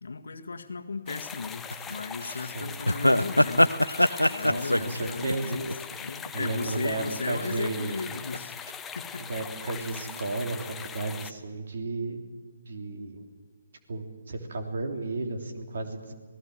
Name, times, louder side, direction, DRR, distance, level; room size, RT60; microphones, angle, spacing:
voice 1, 0.0-3.8 4.2-5.7 6.0-8.5 9.0-9.3, left 4 dB, 60° left, 7 dB, 1.7 m, -36 dB
sound 1, 1.1-11.3, left 7 dB, 10° left, 0.8 m, -41 dB
sound 2, 1.7-1.9 2.2-2.3 2.9-6.5 6.8-7.2 7.9-8.4 8.7-8.8, left 1 dB, 85° left, 0.8 m, -23 dB
voice 2, 2.4-2.7 4.4-5.6 6.3-8.0 9.2-12.2 12.7-13.3 13.9-16.1, right 3 dB, 55° right, 4 dB, 3.2 m, -33 dB
26.5 x 18.0 x 7.8 m, 1.4 s
figure-of-eight pair, 135°, 0 cm